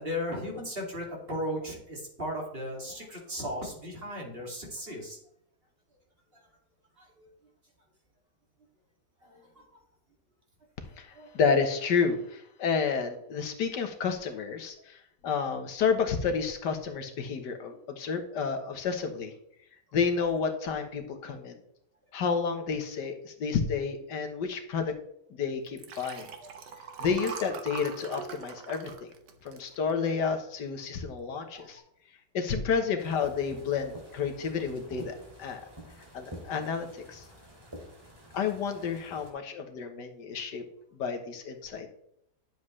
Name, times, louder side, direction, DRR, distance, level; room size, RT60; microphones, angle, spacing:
voice 1, 0.0-5.2 6.3-6.4 7.0-7.3 9.2-9.8 11.1-11.3 26.1-26.2 31.3-31.7, equal, 35° right, -1 dB, 2.6 m, -37 dB
voice 2, 11.0-19.3 19.9-21.6 22.1-24.9 25.4-26.3 27.0-29.1 29.4-31.8 32.3-35.6 36.1-37.2 38.3-40.6 40.9-41.9, left 5 dB, 80° left, 6 dB, 1.7 m, -30 dB
Liquid, 25.7-30.3 30.8-31.1 31.3-31.4, right 6 dB, 80° right, 1.7 m, -42 dB
sound 1, 33.0-39.3, equal, 15° right, 2.3 m, -48 dB
11.0 x 7.5 x 3.2 m, 0.73 s
omnidirectional pair, 1.8 m